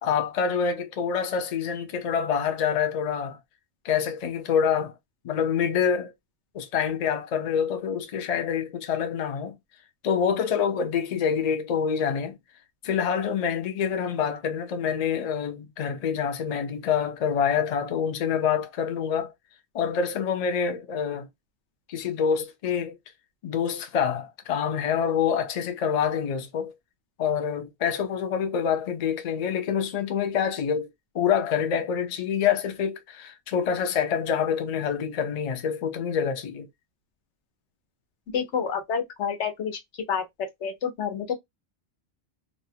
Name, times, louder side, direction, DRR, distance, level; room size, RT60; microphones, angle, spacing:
voice 1, 0.0-3.4 3.8-4.9 5.2-6.1 6.5-9.5 10.0-12.4 12.8-19.3 19.7-21.3 21.9-23.0 23.4-26.7 27.2-30.9 31.1-36.7, left 7 dB, 50° left, 0.5 m, -26 dB
voice 2, 38.3-39.8 40.1-41.3, left 7 dB, 85° left, 1.1 m, -29 dB
2.6 x 2.0 x 2.6 m
omnidirectional pair, 1.2 m